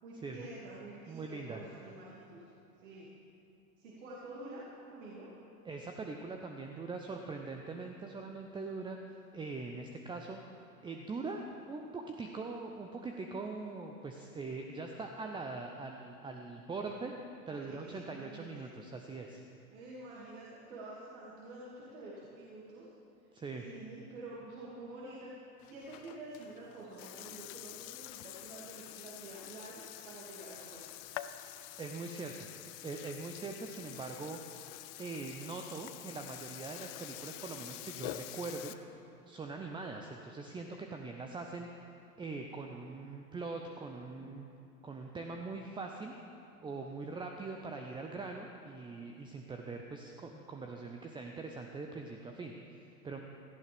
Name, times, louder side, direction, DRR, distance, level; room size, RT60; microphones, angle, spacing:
voice 1, 0.0-2.4 2.8-3.1 3.8-4.6 4.9-5.3 17.5-18.6 19.7-22.9 23.6-25.3 25.7-30.9, right 2 dB, 60° right, -5 dB, 2.5 m, -48 dB
voice 2, 1.1-1.6 5.6-9.0 9.3-10.4 10.8-17.1 17.5-19.4 23.3-23.6 31.8-32.5 32.8-34.4 35.0-38.7 39.3-41.7 42.2-44.4 44.8-46.1 46.6-53.2, right 3 dB, 10° right, 3 dB, 0.6 m, -42 dB
Burping eructation, 25.6-38.7, left 15 dB, 35° left, 0.5 m, -47 dB
17.0 x 14.0 x 3.5 m, 2.6 s
figure-of-eight pair, 90°, 45 cm